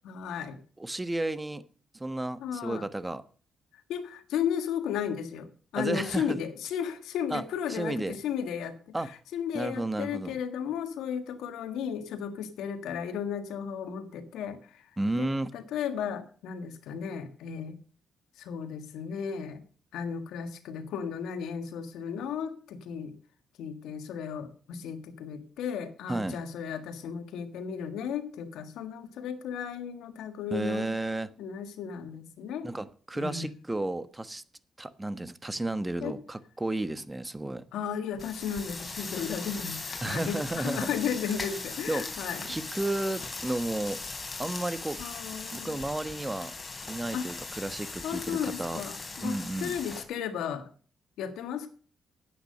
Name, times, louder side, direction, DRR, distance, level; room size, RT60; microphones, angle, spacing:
voice 1, 0.0-0.6 2.4-2.8 3.9-8.7 9.3-14.9 15.1-17.8 18.4-19.6 19.9-23.1 23.6-30.9 31.4-32.7 33.1-33.5 36.0-36.1 37.7-42.5 45.0-45.8 47.1-47.3 48.0-50.7 51.2-51.7, left 8 dB, 80° left, 9 dB, 1.6 m, -34 dB
voice 2, 0.8-1.6 1.9-3.2 5.7-6.4 7.3-7.4 7.7-8.2 8.9-9.1 9.5-10.4 15.0-15.5 26.1-26.4 30.5-31.3 32.6-34.4 34.8-37.6 40.0-40.9 41.4-41.5 41.9-42.0 42.5-44.0 44.4-45.0 45.5-46.5 46.9-48.8 49.2-49.7, right 2 dB, 20° right, 14 dB, 1.2 m, -32 dB
sound 1, 38.2-50.0, left 3 dB, 35° left, 3.5 m, -39 dB
10.5 x 8.8 x 6.6 m, 0.42 s
supercardioid pair, 50°, 0 cm